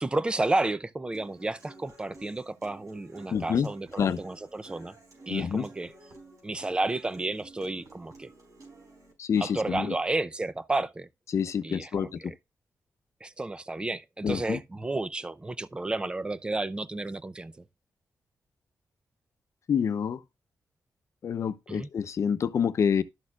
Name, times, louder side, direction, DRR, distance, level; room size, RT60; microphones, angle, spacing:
voice 1, 0.0-5.0 5.3-5.9 6.4-8.3 9.4-11.1 11.6-12.3 13.2-17.6 21.7-21.9, right 2 dB, 15° right, 0.6 m, -32 dB
Human voice / Acoustic guitar, 1.1-9.1, right 2 dB, 75° right, 4.6 m, -52 dB
voice 2, 3.3-3.7 4.0-4.2 5.3-5.7 9.2-9.9 11.3-12.3 14.2-14.6 19.7-20.2 21.2-23.0, left 7 dB, 60° left, 0.7 m, -27 dB
12.5 x 6.5 x 2.4 m
wide cardioid pair, 130°, 6 cm